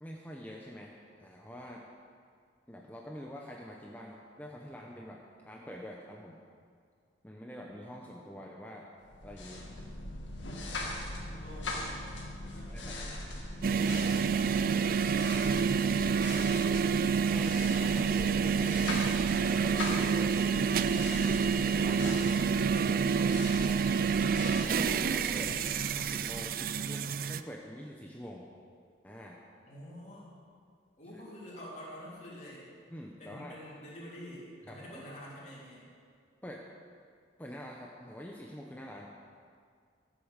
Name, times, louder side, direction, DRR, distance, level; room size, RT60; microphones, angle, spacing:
voice 1, 0.0-1.8 2.7-6.4 7.2-8.9 9.2-9.7 12.7-13.0 15.1-15.6 17.3-18.9 19.3-20.4 20.8-22.4 22.8-23.8 24.6-25.6 25.9-28.5 29.0-29.4 31.1-31.2 32.9-33.6 34.7-35.1 36.4-36.7 37.4-39.1, equal, 10° left, -1 dB, 0.8 m, -46 dB
sound 1, 9.1-26.9, left 1 dB, 80° left, 2.0 m, -40 dB
voice 2, 10.4-10.8 11.2-13.2 13.8-15.1 29.6-30.3 31.0-32.7 33.2-35.8, equal, 40° left, -6 dB, 3.3 m, -49 dB
sound 2, 13.6-27.4, right 6 dB, 50° right, 0.3 m, -28 dB
13.5 x 8.1 x 6.6 m, 2.1 s
head